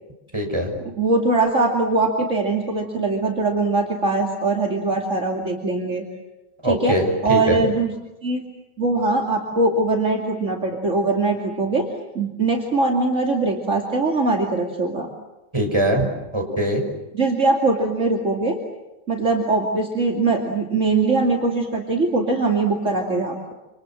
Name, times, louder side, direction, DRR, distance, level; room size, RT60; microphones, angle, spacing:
voice 1, 0.3-0.7 6.6-7.6 15.5-16.0 16.3-16.8, right 1 dB, 15° right, 2 dB, 6.2 m, -21 dB
voice 2, 0.9-6.0 6.6-7.0 7.2-7.9 8.2-8.4 8.8-11.9 12.1-15.1 17.1-18.6 19.1-23.5, right 3 dB, 45° right, 1 dB, 2.9 m, -21 dB
28.0 x 28.0 x 7.6 m, 0.96 s
omnidirectional pair, 1.8 m